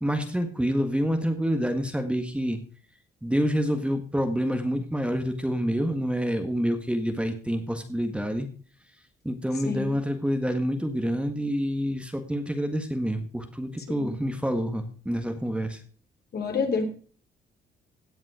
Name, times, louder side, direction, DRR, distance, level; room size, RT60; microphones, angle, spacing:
voice 1, 0.0-2.6 3.2-8.5 9.3-15.8, equal, 5° right, 6 dB, 1.7 m, -27 dB
voice 2, 9.5-10.0 13.9-14.2 16.3-16.8, left 4 dB, 55° left, 4 dB, 3.6 m, -29 dB
17.0 x 7.4 x 4.9 m, 0.43 s
cardioid pair, 90°, 20 cm